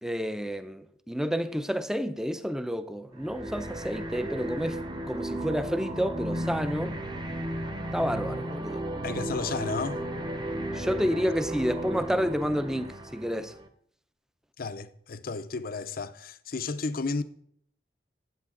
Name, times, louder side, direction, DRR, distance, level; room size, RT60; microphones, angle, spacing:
voice 1, 0.0-4.8 5.1-7.0 7.9-8.9 10.7-13.6, equal, 5° right, 0.6 m, -30 dB
sound 1, 3.2-13.7, right 1 dB, 25° right, 0.9 m, -34 dB
voice 2, 9.0-10.0 14.6-17.2, left 4 dB, 55° left, 0.6 m, -33 dB
13.5 x 9.0 x 3.8 m
head